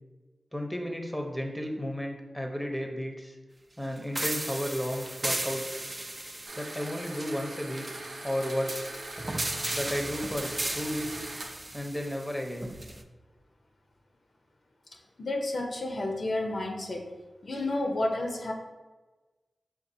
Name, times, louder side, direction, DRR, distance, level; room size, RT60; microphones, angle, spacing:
voice 1, 0.5-3.4 3.8-5.8 6.5-7.8 8.2-8.9 9.7-11.3 11.7-12.7, equal, 10° left, 2 dB, 0.7 m, -33 dB
sound 1, 4.2-13.0, right 1 dB, 30° right, 0.4 m, -36 dB
sound 2, 6.5-11.5, right 2 dB, 80° right, 0.6 m, -42 dB
voice 2, 15.2-17.1 17.4-18.5, left 2 dB, 65° left, 2 dB, 0.6 m, -31 dB
5.2 x 2.4 x 2.6 m, 1.2 s
cardioid pair, 45°, 0 cm